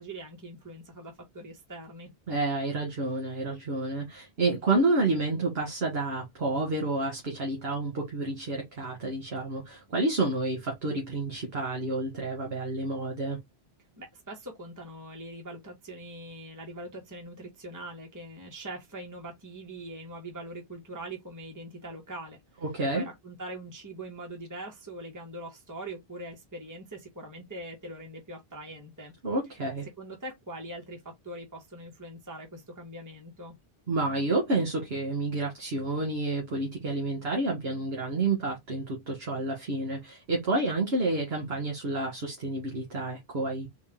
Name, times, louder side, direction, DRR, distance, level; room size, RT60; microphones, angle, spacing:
voice 1, 0.0-2.1 14.0-22.4 22.9-29.1 30.0-33.5, right 1 dB, 20° right, 1.2 m, -42 dB
voice 2, 2.3-13.4 22.6-23.0 29.2-29.9 33.9-43.7, right 2 dB, 75° right, 1.6 m, -29 dB
4.0 x 2.4 x 3.6 m
omnidirectional pair, 1.0 m